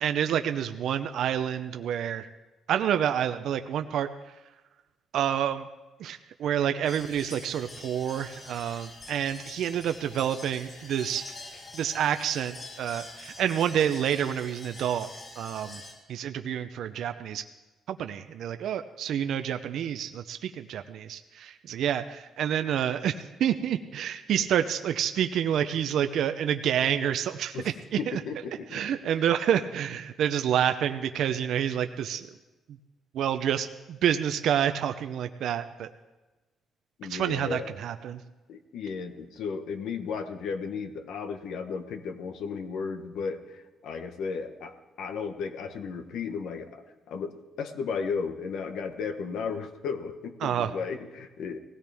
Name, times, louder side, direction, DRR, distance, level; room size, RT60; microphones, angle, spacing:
voice 1, 0.0-2.3 2.7-4.1 5.1-5.7 6.0-11.2 11.7-15.1 15.4-15.8 16.1-17.4 17.9-23.1 23.4-28.2 28.7-32.3 33.1-35.9 37.1-38.2 50.4-50.7, right 9 dB, 75° right, 8 dB, 0.6 m, -28 dB
sound 1, 6.9-15.9, left 2 dB, 40° left, 6.2 m, -45 dB
voice 2, 28.0-28.8 37.0-37.7 38.5-44.7 45.0-51.6, left 5 dB, 80° left, 7 dB, 1.3 m, -34 dB
19.0 x 16.5 x 3.5 m, 1.1 s
cardioid pair, 90°, 0 cm